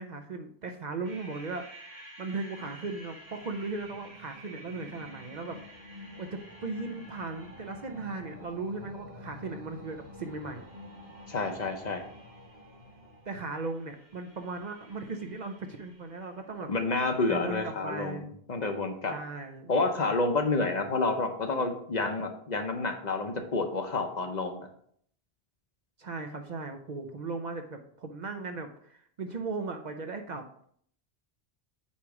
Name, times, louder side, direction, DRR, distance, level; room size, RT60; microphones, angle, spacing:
voice 1, 0.0-5.6 6.2-10.6 13.3-16.7 17.3-18.3 19.1-19.7 26.0-30.4, right 3 dB, 50° right, 6 dB, 0.6 m, -37 dB
sound 1, 1.0-16.3, left 1 dB, 75° right, 3.5 m, -49 dB
voice 2, 11.3-12.0 16.7-19.1 19.7-24.7, left 3 dB, 50° left, 5 dB, 0.8 m, -29 dB
8.3 x 3.0 x 4.7 m, 0.64 s
omnidirectional pair, 1.1 m